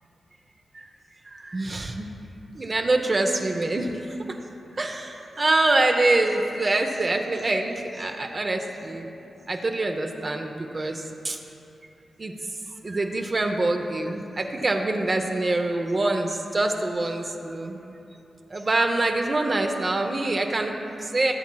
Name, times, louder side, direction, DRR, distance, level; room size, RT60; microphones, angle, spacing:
voice 1, 1.2-2.1 2.5-4.4 4.7-9.1 9.5-11.4 12.2-12.3 12.8-17.8 18.5-21.3, right 2 dB, 35° right, 3 dB, 0.6 m, -25 dB
16.5 x 7.2 x 2.2 m, 2.9 s
cardioid pair, 90°, 0 cm